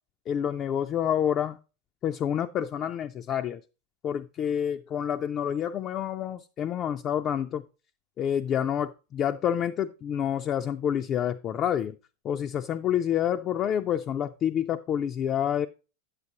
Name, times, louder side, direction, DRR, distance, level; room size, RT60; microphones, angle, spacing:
voice 1, 0.3-1.6 2.0-3.6 4.0-7.6 8.2-11.9 12.2-15.7, left 9 dB, 30° left, 0.3 m, -28 dB
8.3 x 7.9 x 2.8 m
figure-of-eight pair, 90°, 0 cm